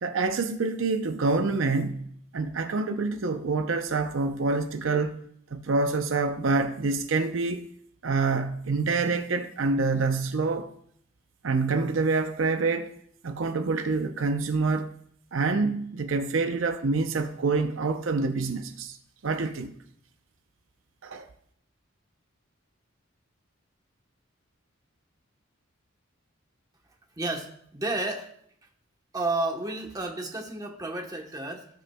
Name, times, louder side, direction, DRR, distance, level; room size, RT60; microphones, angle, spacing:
voice 1, 0.0-5.2 5.5-7.6 8.0-10.7 11.4-12.9 13.2-14.9 15.3-19.0 19.2-19.7 21.0-21.3, right 3 dB, 70° right, 0.6 m, -26 dB
voice 2, 27.2-28.3 29.1-31.7, right 2 dB, 20° right, 1.0 m, -31 dB
17.5 x 6.3 x 2.3 m
head